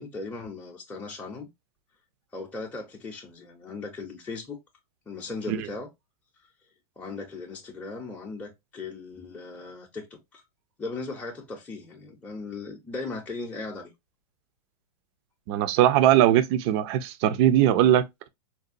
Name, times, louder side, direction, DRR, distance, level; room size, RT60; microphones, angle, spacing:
voice 1, 0.0-1.5 2.3-4.6 5.1-5.9 7.0-10.1 10.3-10.4 10.8-13.9, left 3 dB, 5° left, 0.7 m, -37 dB
voice 2, 15.5-18.3, right 12 dB, 45° right, 0.5 m, -20 dB
4.0 x 2.2 x 2.5 m
hypercardioid pair, 120°, 19 cm